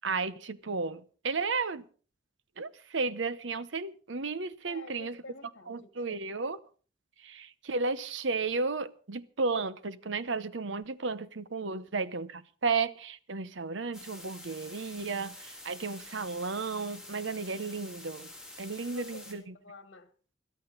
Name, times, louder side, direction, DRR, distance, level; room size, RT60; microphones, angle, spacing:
voice 1, 0.0-1.8 2.6-5.2 5.7-6.6 7.2-18.3 18.6-19.5, right 4 dB, 75° right, 0.9 m, -33 dB
voice 2, 4.6-6.2 11.7-11.8 18.8-20.1, left 3 dB, 80° left, 1.5 m, -49 dB
sound 1, 13.9-19.3, left 1 dB, 5° right, 3.5 m, -48 dB
22.0 x 14.0 x 4.0 m
head